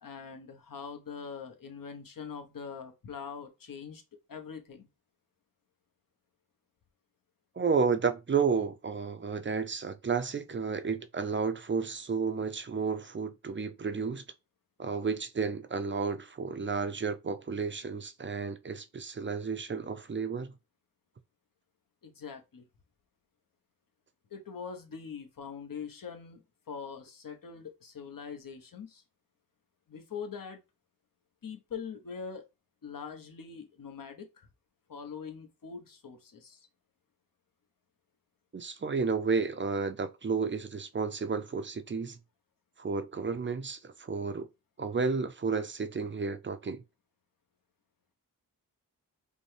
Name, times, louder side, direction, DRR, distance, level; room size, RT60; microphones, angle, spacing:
voice 1, 0.0-4.0 4.3-4.9 22.0-22.7 24.3-26.4 26.7-29.0 29.9-30.6 31.4-32.4 32.8-34.5 34.9-36.7, left 6 dB, 60° left, 0.9 m, -43 dB
voice 2, 7.6-14.2 14.8-20.6 38.5-42.2 42.8-44.5 44.8-46.8, right 5 dB, 30° right, 0.4 m, -32 dB
5.2 x 2.2 x 3.2 m
wide cardioid pair, 90°, 38 cm